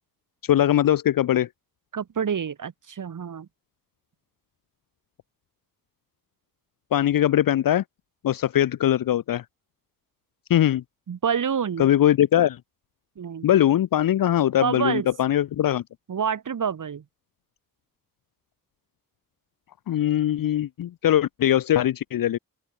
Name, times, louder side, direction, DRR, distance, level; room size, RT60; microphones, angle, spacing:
voice 1, 0.5-1.5 6.9-7.8 8.2-9.4 10.5-10.8 11.8-12.6 13.4-15.8 19.9-22.4, left 11 dB, 70° left, 0.5 m, -21 dB
voice 2, 1.9-3.5 11.1-11.9 13.2-13.5 14.6-15.1 16.1-17.0, right 7 dB, 65° right, 1.4 m, -27 dB
open air
wide cardioid pair, 140°, 35 cm